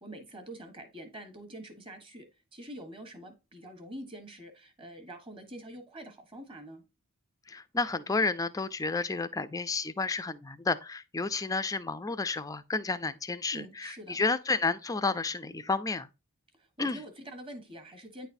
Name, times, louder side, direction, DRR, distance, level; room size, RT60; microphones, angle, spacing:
voice 1, 0.0-2.3 2.5-6.8 13.5-14.2 16.5-18.3, right 1 dB, 25° right, 1.3 m, -45 dB
voice 2, 7.5-16.1 16.8-17.0, left 3 dB, 15° left, 0.4 m, -31 dB
9.3 x 4.0 x 2.6 m
head